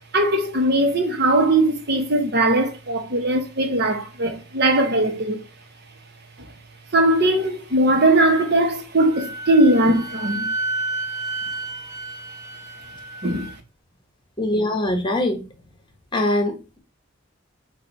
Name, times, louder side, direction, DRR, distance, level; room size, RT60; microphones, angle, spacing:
voice 1, 0.1-5.4 6.4-6.5 6.9-10.5 13.2-13.6, right 1 dB, 55° right, 1.3 m, -19 dB
Wind instrument woodwind instrument, 9.1-13.6, right 2 dB, 15° right, 0.9 m, -31 dB
voice 2, 14.4-15.4 16.1-16.8, left 1 dB, 25° left, 1.3 m, -22 dB
7.7 x 2.7 x 5.5 m
head